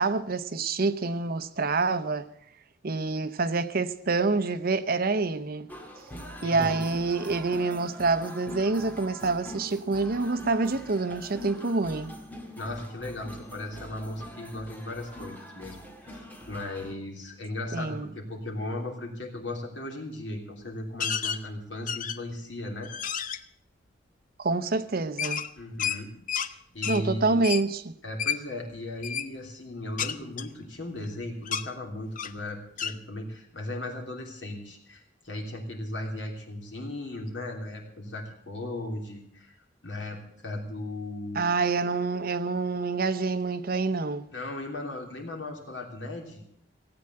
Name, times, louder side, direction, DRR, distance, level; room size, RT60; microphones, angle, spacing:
voice 1, 0.0-2.3 2.8-5.7 6.4-12.1 17.7-18.1 24.4-25.4 26.8-27.9 41.4-44.3, right 3 dB, 55° right, 0.8 m, -27 dB
sound 1, 5.7-16.9, equal, 10° left, 2.0 m, -43 dB
voice 2, 6.4-6.8 12.6-22.9 25.6-26.1 26.5-27.5 28.0-39.6 39.8-41.5 44.3-46.4, left 1 dB, 75° left, 3.2 m, -37 dB
sound 2, 21.0-21.4 21.9-22.4 22.8-23.4 25.2-26.5 26.8-27.0 27.4-27.7 28.2-28.4 29.0-29.3 30.0-31.1 31.5-31.7 32.2-32.4 32.8-33.0, left 8 dB, 45° left, 0.7 m, -31 dB
16.5 x 8.7 x 7.7 m
head